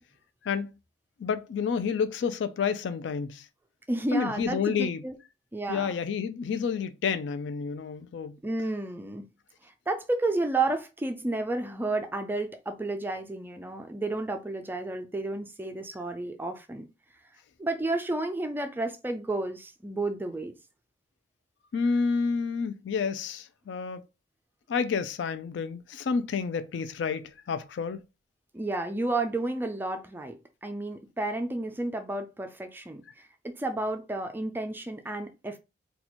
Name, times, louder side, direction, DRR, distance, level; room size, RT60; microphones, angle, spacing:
voice 1, 1.2-3.4 4.1-5.0 5.7-8.4 21.7-24.0 24.7-28.0, left 5 dB, 75° left, 0.3 m, -29 dB
voice 2, 3.9-5.1 5.5-5.9 8.4-9.2 9.6-16.9 17.6-20.5 28.5-35.6, right 2 dB, 10° right, 0.3 m, -31 dB
2.8 x 2.3 x 4.2 m
head